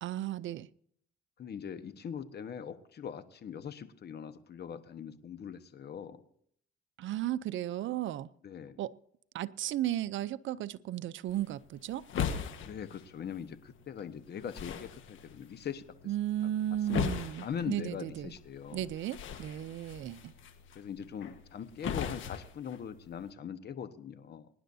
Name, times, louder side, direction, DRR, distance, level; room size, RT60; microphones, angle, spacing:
voice 1, 0.0-0.7 7.0-8.3 8.8-9.0 9.3-12.1 16.1-18.3 18.7-20.3, right 12 dB, 75° right, 0.6 m, -35 dB
voice 2, 1.4-6.2 8.4-8.8 12.7-15.8 16.9-18.8 20.7-24.5, left 8 dB, 55° left, 1.2 m, -41 dB
sound 1, 11.3-23.3, left 7 dB, 80° left, 1.5 m, -40 dB
24.5 x 10.5 x 2.7 m
cardioid pair, 90°, 20 cm